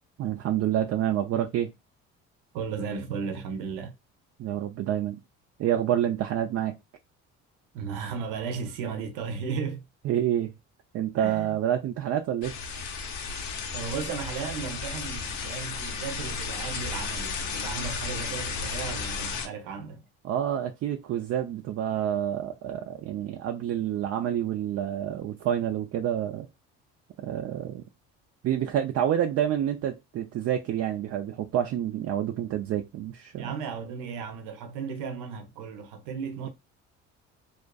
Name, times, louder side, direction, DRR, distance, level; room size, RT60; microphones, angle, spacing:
voice 1, 0.2-1.7 4.4-5.2 5.6-6.7 10.0-10.5 10.9-12.6 20.2-26.5 27.2-27.8 28.4-33.5, right 10 dB, 50° right, 0.4 m, -28 dB
voice 2, 2.5-3.9 7.7-9.8 11.2-11.6 13.7-20.0 33.4-36.5, right 6 dB, 85° right, 0.7 m, -35 dB
sound 1, 12.4-19.5, left 5 dB, 70° left, 0.7 m, -33 dB
2.5 x 2.4 x 2.2 m
supercardioid pair, 85°, 30 cm